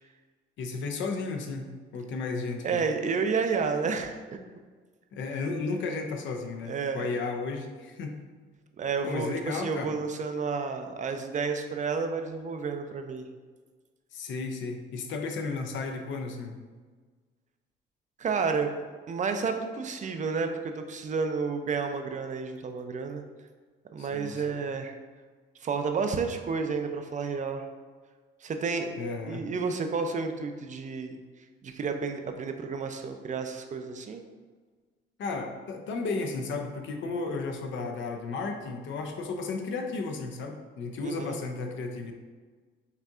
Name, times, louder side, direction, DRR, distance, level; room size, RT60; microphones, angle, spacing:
voice 1, 0.6-2.8 5.1-8.1 9.0-9.9 14.1-16.6 24.0-24.6 29.0-29.5 35.2-42.1, left 4 dB, 75° left, 4 dB, 0.6 m, -34 dB
voice 2, 2.6-4.4 5.3-5.4 6.7-7.1 8.8-13.3 18.2-18.8 19.1-23.2 23.9-24.9 25.6-27.6 28.4-28.9 29.2-31.2 31.6-34.2 41.0-41.4, right 5 dB, 40° right, 6 dB, 0.4 m, -31 dB
5.5 x 2.6 x 2.4 m, 1.4 s
cardioid pair, 90°, 20 cm